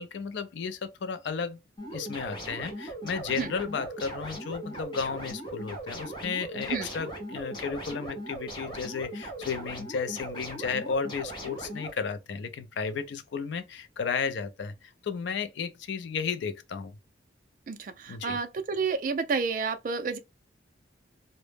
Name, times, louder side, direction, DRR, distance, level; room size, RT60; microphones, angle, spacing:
voice 1, 0.0-1.6 1.9-17.0 18.1-18.4, left 6 dB, 70° left, 0.4 m, -33 dB
sound 1, 1.8-11.9, right 1 dB, 25° left, 0.6 m, -39 dB
voice 2, 17.7-20.2, right 5 dB, 45° right, 0.3 m, -30 dB
2.0 x 2.0 x 3.1 m
head